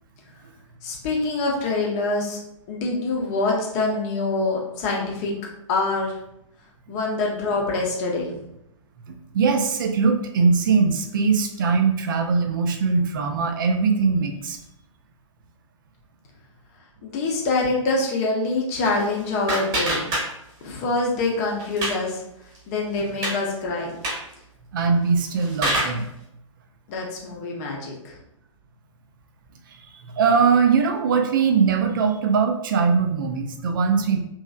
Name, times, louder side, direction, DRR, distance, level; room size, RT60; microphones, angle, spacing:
voice 1, 0.8-2.4 2.7-5.3 5.7-6.1 6.9-8.3 17.0-20.1 20.6-22.2 22.7-23.9 26.9-28.2, left 3 dB, 30° left, -1 dB, 0.7 m, -25 dB
voice 2, 9.1-14.6 24.7-26.1 30.2-34.2, right 5 dB, 40° right, 5 dB, 0.4 m, -21 dB
sound 1, 18.7-20.7 21.0-22.1 22.5-22.6 23.0-23.4 23.9-24.3 25.1-26.0, right 1 dB, 20° right, 1.0 m, -27 dB
3.0 x 2.7 x 2.3 m, 0.80 s
figure-of-eight pair, 120°, 17 cm